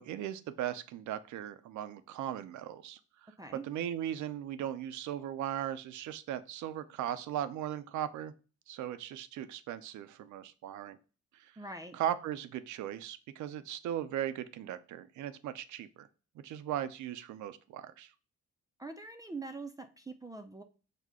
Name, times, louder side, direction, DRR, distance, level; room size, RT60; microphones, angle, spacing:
voice 1, 0.0-3.3 3.6-8.3 8.7-11.0 11.3-11.5 11.9-16.1 16.4-18.1, right 11 dB, 75° right, 12 dB, 0.5 m, -38 dB
voice 2, 11.6-12.0 18.8-20.6, right 3 dB, 10° right, 7 dB, 0.4 m, -43 dB
4.9 x 2.2 x 3.6 m, 0.36 s
cardioid pair, 90°, 30 cm